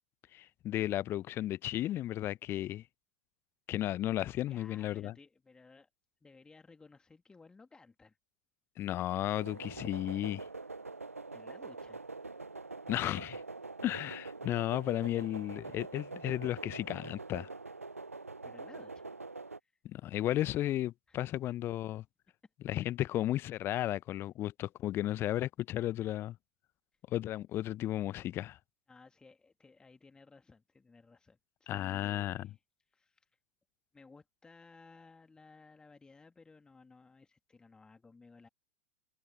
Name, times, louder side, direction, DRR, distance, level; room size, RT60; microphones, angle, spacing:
voice 1, 0.3-2.8 3.7-5.1 8.8-10.4 12.9-13.4 13.8-17.5 19.8-22.0 22.6-26.4 27.1-28.6 31.7-32.5, left 13 dB, 30° left, 0.8 m, -34 dB
voice 2, 4.5-5.9 6.2-8.2 11.3-12.1 18.4-19.0 19.6-19.8 21.1-21.3 28.9-32.6 32.9-33.3 33.9-38.5, left 4 dB, 10° left, 2.4 m, -58 dB
sound 1, 9.3-19.6, right 3 dB, 85° right, 0.7 m, -45 dB
figure-of-eight pair, 90°, 7 cm